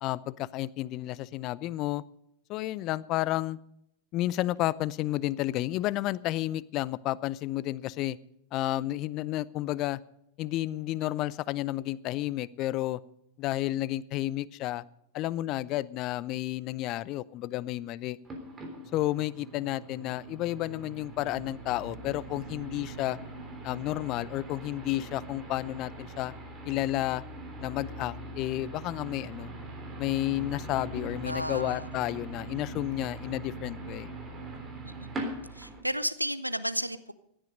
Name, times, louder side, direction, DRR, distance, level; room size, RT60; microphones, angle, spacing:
voice 1, 0.0-2.0 2.5-3.6 4.1-8.2 8.5-10.0 10.4-13.0 13.4-14.8 15.1-18.2 18.9-23.2 23.6-26.3 26.7-27.2 27.6-29.5 30.0-34.1, left 16 dB, 40° left, 21 dB, 0.5 m, -31 dB
sound 1, 18.2-35.8, right 2 dB, 20° right, 3.5 m, -42 dB
voice 2, 31.2-31.9 34.8-35.1 35.6-37.1, equal, 90° right, 14 dB, 0.6 m, -33 dB
16.0 x 11.5 x 5.2 m, 0.78 s
figure-of-eight pair, 90°, 0 cm